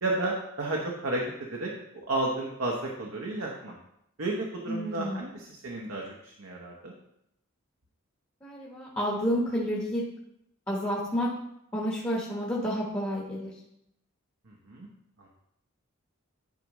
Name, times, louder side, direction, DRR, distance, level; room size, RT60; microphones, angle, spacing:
voice 1, 0.0-3.7 4.2-6.9 14.5-14.9 15.2-15.3, right 2 dB, 65° right, -1 dB, 1.0 m, -32 dB
voice 2, 4.7-5.3 8.4-10.0 10.7-11.3 11.7-13.5, equal, 15° left, -4 dB, 1.2 m, -30 dB
10.5 x 4.9 x 3.1 m, 0.80 s
head